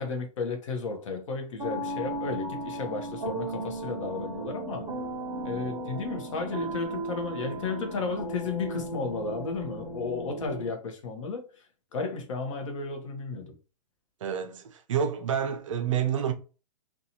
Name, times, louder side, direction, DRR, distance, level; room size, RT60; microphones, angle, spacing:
voice 1, 0.0-4.9 5.4-11.6 11.9-13.6, left 4 dB, 50° left, 0.8 m, -33 dB
sound 1, 1.6-10.7, right 2 dB, 15° right, 0.9 m, -36 dB
voice 2, 14.2-16.3, right 8 dB, 50° right, 0.5 m, -28 dB
2.6 x 2.3 x 2.8 m
hypercardioid pair, 170°, 21 cm